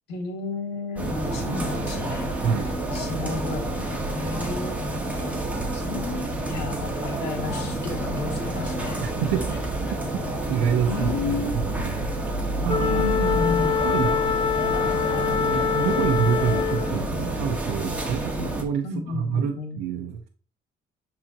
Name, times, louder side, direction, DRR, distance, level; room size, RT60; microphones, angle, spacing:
voice 1, 0.1-2.3 2.6-3.7 4.1-4.8 5.2-5.4 5.7-9.0 10.9-11.7 12.8-13.8 18.8-19.8, left 3 dB, 85° left, 2 dB, 2.2 m, -32 dB
sound 1, 1.0-18.6, right 1 dB, 10° right, 1.7 m, -28 dB
voice 2, 2.4-2.7 4.2-4.3 9.0-9.6 10.5-12.1 12.6-13.0 13.8-14.2 14.6-20.3, right 8 dB, 90° right, 2 dB, 0.8 m, -27 dB
Wind instrument woodwind instrument, 12.7-17.0, left 7 dB, 30° left, 0.6 m, -25 dB
9.9 x 4.1 x 2.9 m, 0.39 s
cardioid pair, 110°, 17 cm